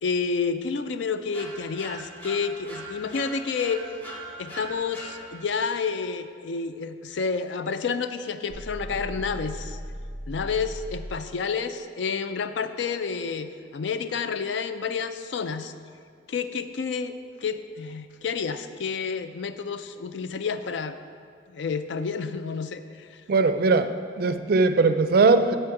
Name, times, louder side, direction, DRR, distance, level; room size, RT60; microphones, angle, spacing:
voice 1, 0.0-3.8 4.4-9.8 10.3-15.7 16.3-17.1 17.4-21.0 21.5-23.2, left 5 dB, 70° left, 10 dB, 0.4 m, -29 dB
sound 1, 1.3-5.7, right 1 dB, 10° left, 0.9 m, -41 dB
sound 2, 8.5-11.3, equal, 25° left, 1.8 m, -37 dB
voice 2, 23.3-25.6, right 3 dB, 50° right, 10 dB, 0.4 m, -20 dB
12.0 x 4.5 x 4.8 m, 2.1 s
head